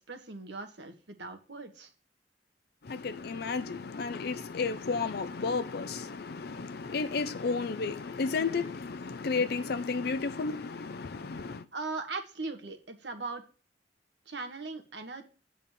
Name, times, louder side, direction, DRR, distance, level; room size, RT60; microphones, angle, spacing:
voice 1, 0.0-1.9 11.7-13.4 14.3-15.2, right 3 dB, 75° right, 1.4 m, -39 dB
voice 2, 2.8-11.7, left 4 dB, 60° left, 0.5 m, -32 dB
9.0 x 4.2 x 7.2 m
head